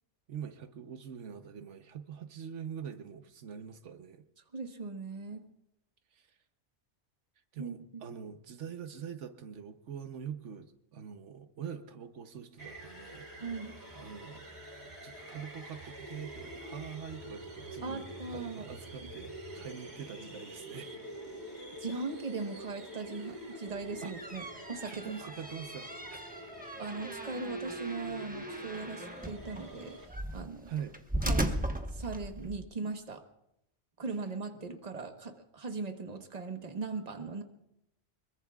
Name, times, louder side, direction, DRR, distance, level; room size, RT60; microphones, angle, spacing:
voice 1, 0.3-4.2 6.1-6.2 7.5-13.3 14.0-14.5 15.0-21.0 24.0-24.1 24.9-26.4 30.7-31.0, right 8 dB, 85° right, 8 dB, 1.2 m, -44 dB
voice 2, 4.5-5.5 7.6-8.0 13.4-13.8 17.8-18.7 19.0-19.1 21.8-25.3 26.8-30.7 31.2-31.5 31.9-33.2 34.0-37.4, right 4 dB, 35° right, 6 dB, 1.3 m, -39 dB
sound 1, 12.6-30.1, right 1 dB, 55° right, 3.7 m, -46 dB
sound 2, 23.7-32.6, right 1 dB, 10° right, 1.0 m, -38 dB
24.5 x 22.0 x 2.4 m, 0.80 s
omnidirectional pair, 1.2 m